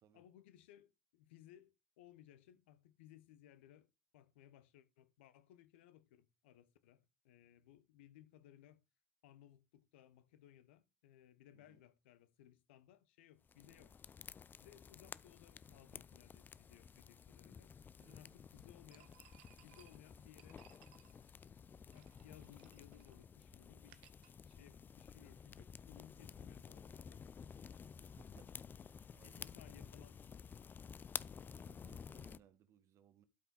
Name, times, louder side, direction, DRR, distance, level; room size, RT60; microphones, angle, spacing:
voice 1, 0.1-8.8 9.2-14.0 14.6-17.7 18.1-19.3 19.6-20.6 21.2-24.0 24.5-27.2 29.2-30.2, left 12 dB, 70° left, 1.0 m, -63 dB
voice 2, 11.5-11.8 13.6-13.9 18.0-18.4 28.0-28.7 29.1-29.9 31.6-33.3, right 9 dB, 50° right, 1.4 m, -67 dB
sound 1, 13.5-32.4, left 6 dB, 30° left, 0.5 m, -53 dB
sound 2, 18.9-25.2, right 13 dB, 65° right, 1.0 m, -68 dB
12.5 x 5.7 x 4.1 m
figure-of-eight pair, 60°, 7 cm